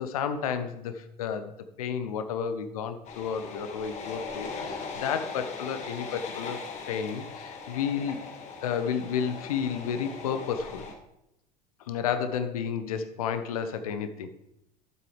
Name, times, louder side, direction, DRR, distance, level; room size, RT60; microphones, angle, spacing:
voice 1, 0.0-8.2 8.6-10.9 11.8-14.3, left 7 dB, 60° left, 9 dB, 0.9 m, -31 dB
sound 1, 3.0-10.9, left 4 dB, 35° left, 1.8 m, -39 dB
12.5 x 7.7 x 3.3 m, 0.84 s
figure-of-eight pair, 75°, 20 cm